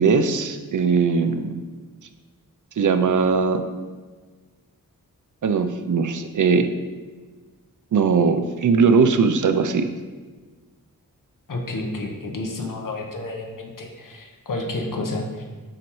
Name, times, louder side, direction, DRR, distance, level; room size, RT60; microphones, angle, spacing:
voice 1, 0.0-1.6 2.8-3.6 5.4-6.7 7.9-9.9, right 5 dB, 65° right, 9 dB, 0.5 m, -19 dB
voice 2, 11.5-15.4, left 2 dB, 70° left, 1 dB, 1.1 m, -30 dB
7.6 x 5.3 x 3.0 m, 1.4 s
wide cardioid pair, 100°, 34 cm